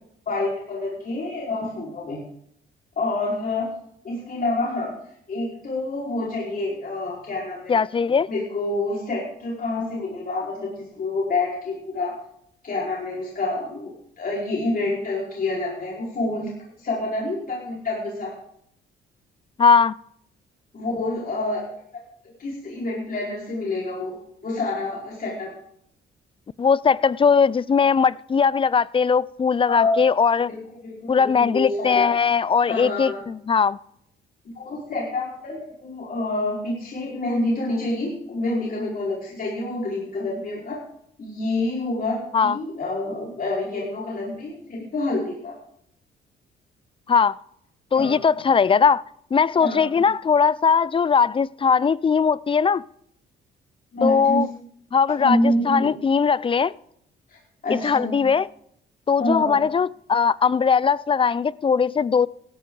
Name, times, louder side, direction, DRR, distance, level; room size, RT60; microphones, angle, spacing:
voice 1, 0.3-2.2 3.0-3.7 4.0-4.9 5.3-7.8 8.3-12.1 12.6-16.5 16.8-18.3 20.7-21.6 22.4-24.2 24.4-25.5 29.7-30.0 30.5-32.1 32.6-33.2 34.5-40.8 41.2-45.5 47.9-48.2 49.6-50.0 53.9-54.4 55.2-56.0 57.3-57.4 57.6-58.2 59.2-59.6, left 2 dB, 45° left, 4.7 m, -27 dB
voice 2, 7.7-8.3 19.6-19.9 26.6-30.5 31.1-33.8 42.3-42.6 47.1-47.4 47.9-49.0 49.3-52.8 54.0-54.5 54.9-56.7 57.7-58.5 59.1-62.3, left 6 dB, 25° left, 0.4 m, -19 dB
17.0 x 13.5 x 3.9 m
cardioid pair, 90°, 20 cm